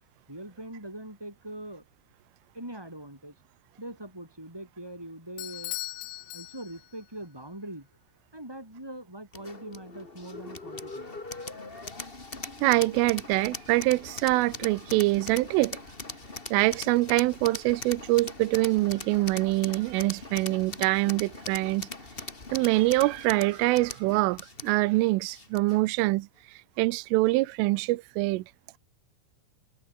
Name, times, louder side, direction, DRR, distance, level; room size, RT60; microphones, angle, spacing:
voice 1, 0.3-1.8 2.5-3.3 3.8-5.8 6.3-7.9 8.3-11.1, right 1 dB, 5° right, 7.5 m, -42 dB
Bell / Doorbell, 5.4-7.1, left 19 dB, 85° left, 3.4 m, -38 dB
sound 1, 9.3-25.9, left 3 dB, 45° left, 0.7 m, -41 dB
voice 2, 12.6-15.8 16.5-21.9 22.5-28.4, right 20 dB, 85° right, 3.3 m, -25 dB
omnidirectional pair, 5.7 m